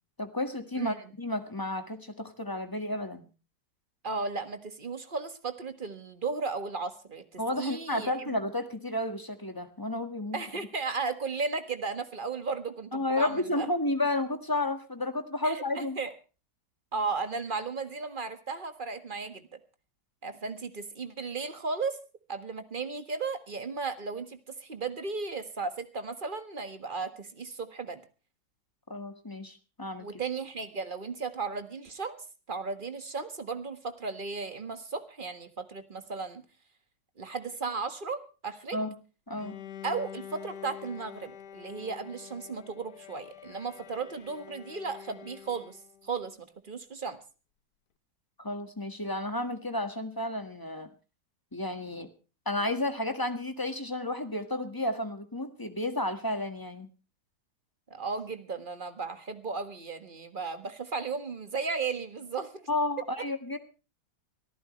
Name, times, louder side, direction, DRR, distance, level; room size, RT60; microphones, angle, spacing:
voice 1, 0.2-3.3 7.4-10.4 12.9-16.0 28.9-30.1 38.7-38.9 39.3-39.6 48.4-50.9 51.5-52.1 52.4-56.9 62.7-63.6, left 1 dB, 10° left, 8 dB, 1.5 m, -32 dB
voice 2, 4.0-8.4 10.3-13.7 15.4-16.1 16.9-19.6 20.2-22.0 22.3-28.0 30.0-32.2 32.5-36.4 37.2-38.8 39.8-45.8 46.0-46.4 46.6-47.2 57.9-62.7, right 4 dB, 30° right, 9 dB, 1.6 m, -35 dB
Bowed string instrument, 39.4-46.1, left 9 dB, 65° left, 1.5 m, -47 dB
24.0 x 14.0 x 3.2 m, 0.34 s
omnidirectional pair, 2.0 m